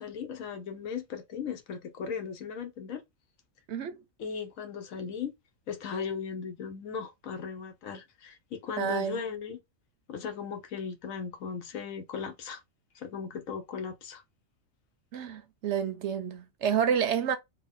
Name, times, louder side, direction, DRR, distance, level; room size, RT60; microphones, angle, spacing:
voice 1, 0.0-3.0 4.2-5.3 5.7-9.6 10.1-12.6 12.9-14.2, left 6 dB, 75° left, 1.2 m, -37 dB
voice 2, 8.8-9.2 15.1-17.4, right 8 dB, 65° right, 0.8 m, -29 dB
3.5 x 2.2 x 3.6 m
omnidirectional pair, 1.4 m